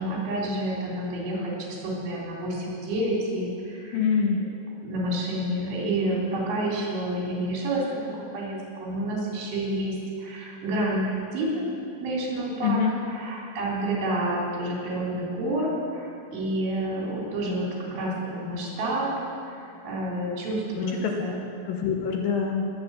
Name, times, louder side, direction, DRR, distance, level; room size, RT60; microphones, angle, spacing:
voice 1, 0.0-4.0 4.8-7.9 8.3-11.7 12.0-19.1 19.4-21.4, right 1 dB, 80° right, -4 dB, 5.7 m, -29 dB
voice 2, 3.9-4.4 12.6-12.9 20.8-21.3 21.6-22.6, left 6 dB, 75° left, 1 dB, 2.2 m, -25 dB
19.0 x 9.1 x 7.4 m, 2.4 s
omnidirectional pair, 5.4 m